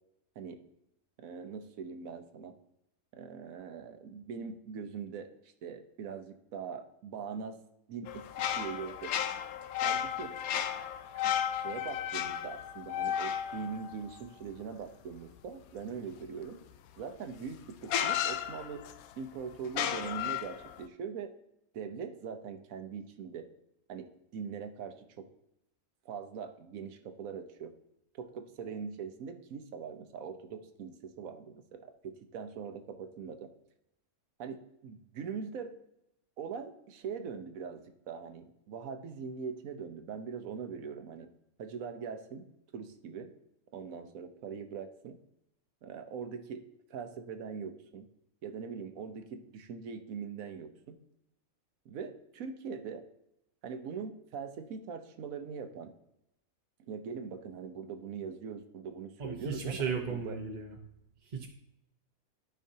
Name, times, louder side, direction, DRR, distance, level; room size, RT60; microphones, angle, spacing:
voice 1, 1.2-2.5 3.1-5.3 5.6-7.6 7.9-9.1 9.8-10.4 11.1-16.6 17.0-18.8 19.2-21.3 21.7-23.5 23.9-25.3 26.0-27.7 28.1-33.5 34.4-35.7 36.4-41.3 41.6-43.3 43.7-45.2 45.8-48.1 48.4-51.0 51.8-53.0 53.6-55.9 56.8-60.4, right 6 dB, 75° right, 8 dB, 1.2 m, -42 dB
sound 1, 8.1-14.7 17.0-17.1 17.8-19.1 19.6-20.8, left 10 dB, 80° left, 1.0 m, -34 dB
voice 2, 59.2-60.8 61.3-61.5, right 5 dB, 40° right, 1 dB, 0.8 m, -35 dB
12.5 x 5.5 x 2.7 m, 0.84 s
omnidirectional pair, 1.5 m